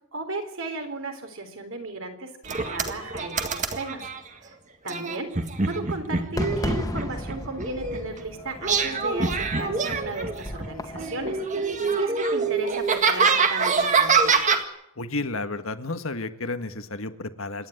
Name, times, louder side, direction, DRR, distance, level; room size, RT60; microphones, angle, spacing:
voice 1, 0.1-4.1 4.4-4.6 4.8-5.3 5.6-14.5, right 2 dB, 60° right, 5 dB, 3.8 m, -35 dB
sound 1, 2.5-4.2 4.9-8.2 8.6-10.7 10.9-14.6, right 4 dB, 35° right, 1.9 m, -25 dB
Fireworks, 6.4-11.4, left 1 dB, 15° left, 2.0 m, -35 dB
voice 2, 15.0-17.7, left 2 dB, 65° left, 9 dB, 1.6 m, -32 dB
27.0 x 10.5 x 9.0 m, 0.81 s
head